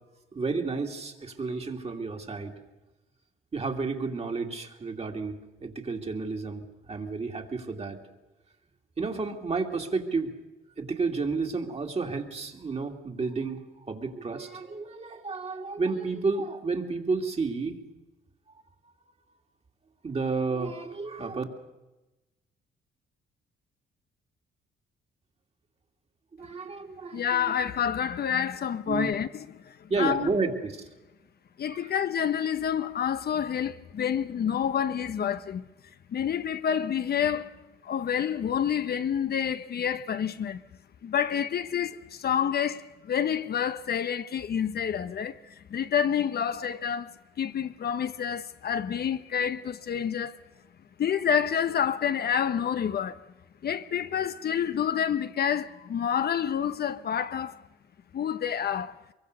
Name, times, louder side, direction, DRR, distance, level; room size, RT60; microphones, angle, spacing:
voice 1, 0.3-2.5 3.5-8.0 9.0-10.3 10.8-17.8 20.0-21.4 26.4-27.5 28.9-29.1 29.9-30.9 31.7-31.9, right 4 dB, 30° right, 2.7 m, -31 dB
voice 2, 27.1-30.3 31.6-35.6 36.1-40.6 41.0-50.4 51.0-53.2 53.6-57.6 58.1-59.0, left 8 dB, 50° left, 0.9 m, -28 dB
23.5 x 23.0 x 6.7 m
cardioid pair, 90°, 20 cm